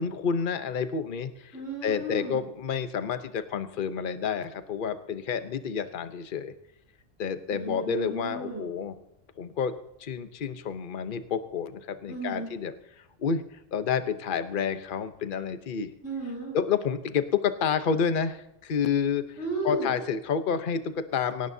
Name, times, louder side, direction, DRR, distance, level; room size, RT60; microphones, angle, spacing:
voice 1, 0.0-1.5 1.8-6.5 7.2-9.0 9.4-9.7 10.0-12.7 13.2-15.9 16.5-19.2 19.6-21.5, left 6 dB, 45° left, 10 dB, 0.9 m, -29 dB
voice 2, 1.5-2.4 7.5-8.6 12.1-12.5 16.0-16.6 19.4-19.9, right 2 dB, 65° left, -3 dB, 7.9 m, -34 dB
22.5 x 18.0 x 2.7 m, 0.84 s
omnidirectional pair, 1.3 m